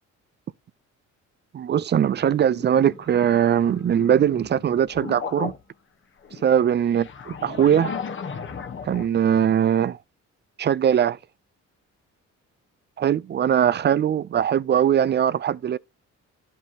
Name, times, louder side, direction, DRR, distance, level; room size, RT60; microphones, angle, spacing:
voice 1, 1.5-5.5 6.4-7.9 8.8-10.0 10.6-11.2 13.0-15.8, right 9 dB, 35° right, 0.4 m, -21 dB
sound 1, 2.2-5.6 6.2-9.1, left 6 dB, 40° left, 1.1 m, -36 dB
12.0 x 5.4 x 2.8 m
cardioid pair, 90°, 30 cm